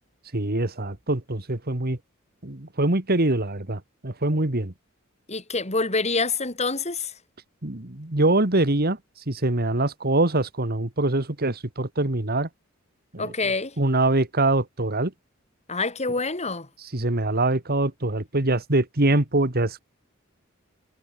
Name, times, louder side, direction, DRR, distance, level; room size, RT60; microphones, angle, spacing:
voice 1, 0.3-2.0 2.4-4.7 7.6-9.0 9.3-12.5 13.1-13.3 13.8-15.1 16.9-19.8, right 2 dB, 50° right, 2.3 m, -24 dB
voice 2, 5.3-7.1 13.2-13.8 15.7-16.7, left 3 dB, 30° left, 5.2 m, -26 dB
head